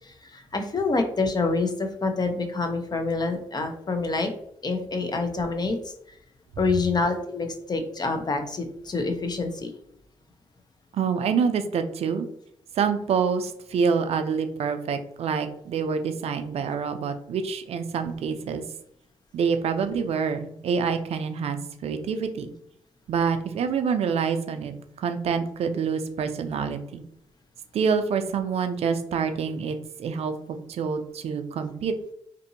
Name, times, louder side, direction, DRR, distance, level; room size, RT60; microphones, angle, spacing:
voice 1, 0.0-4.3 4.6-5.9 6.6-9.7, left 3 dB, 35° left, 5 dB, 0.6 m, -27 dB
voice 2, 10.9-12.3 12.8-18.6 19.3-22.5 23.1-27.0 27.7-31.9, right 6 dB, 65° right, 8 dB, 0.4 m, -27 dB
2.7 x 2.6 x 2.6 m, 0.73 s
supercardioid pair, 50°, 11 cm